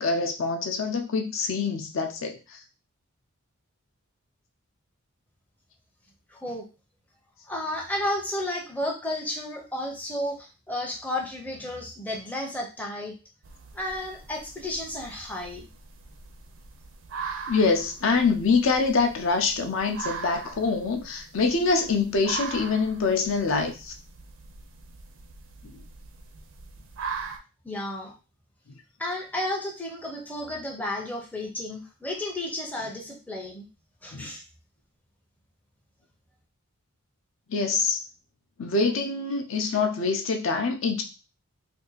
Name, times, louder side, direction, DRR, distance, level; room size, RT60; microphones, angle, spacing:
voice 1, 0.0-2.6 17.5-23.9 25.6-25.7 34.1-34.3 37.5-38.0 38.6-41.0, left 4 dB, 60° left, 4 dB, 0.5 m, -25 dB
voice 2, 6.3-6.7 7.5-13.1 13.7-15.7 27.6-28.1 29.0-33.7 34.0-34.4, left 1 dB, 5° left, 0 dB, 0.5 m, -32 dB
sound 1, 13.4-27.4, right 5 dB, 60° right, 0.5 m, -41 dB
2.7 x 2.5 x 3.9 m, 0.30 s
head